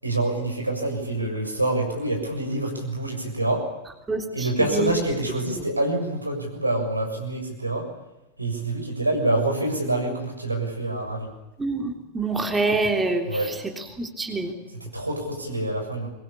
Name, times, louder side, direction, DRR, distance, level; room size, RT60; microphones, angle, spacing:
voice 1, 0.0-3.7 4.3-7.9 8.4-11.3 13.3-13.6 14.8-16.1, right 1 dB, 85° right, 2 dB, 6.9 m, -26 dB
voice 2, 4.1-4.9 11.6-13.3 14.0-14.5, right 3 dB, 10° right, 4 dB, 3.4 m, -26 dB
24.5 x 21.5 x 8.7 m, 1.0 s
figure-of-eight pair, 90°, 0 cm